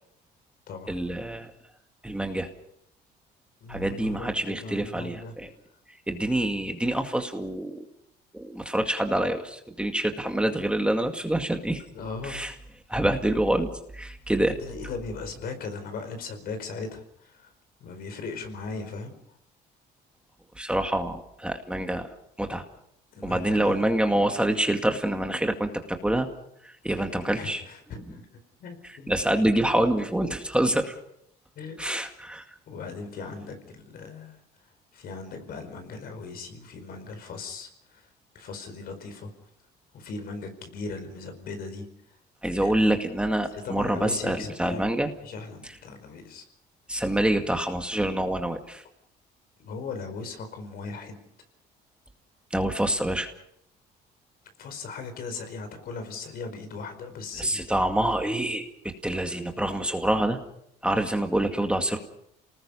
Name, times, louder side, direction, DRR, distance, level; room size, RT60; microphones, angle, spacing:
voice 1, 0.9-1.5 2.0-2.5 3.7-5.5 6.1-7.8 8.3-11.8 12.2-12.5 12.9-13.7 13.9-14.6 20.6-22.1 22.4-22.6 23.2-26.3 26.6-27.6 28.8-31.0 31.8-32.4 42.4-45.1 45.6-45.7 46.9-48.8 52.5-53.3 57.4-60.4 60.8-62.0, right 1 dB, 5° right, 5 dB, 2.2 m, -26 dB
voice 2, 3.6-5.3 11.9-12.4 14.5-17.5 17.8-19.1 23.1-23.8 27.3-28.2 28.6-29.1 31.6-32.0 32.7-34.4 34.9-38.0 38.3-39.3 39.9-41.9 42.6-42.7 43.5-44.8 45.2-46.4 49.6-51.2 54.6-57.6, left 4 dB, 65° left, 7 dB, 4.8 m, -38 dB
28.5 x 19.5 x 5.6 m, 0.70 s
cardioid pair, 110°, 17 cm